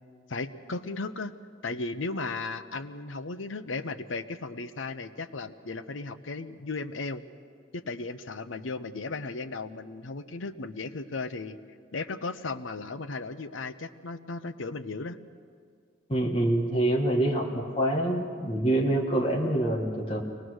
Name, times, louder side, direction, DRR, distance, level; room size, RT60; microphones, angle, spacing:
voice 1, 0.3-1.3 1.6-7.2 7.7-11.6 11.9-15.2, left 3 dB, 85° left, 11 dB, 0.9 m, -35 dB
voice 2, 16.1-20.2, right 1 dB, 30° left, -1 dB, 1.8 m, -26 dB
23.5 x 19.5 x 6.4 m, 2.1 s
head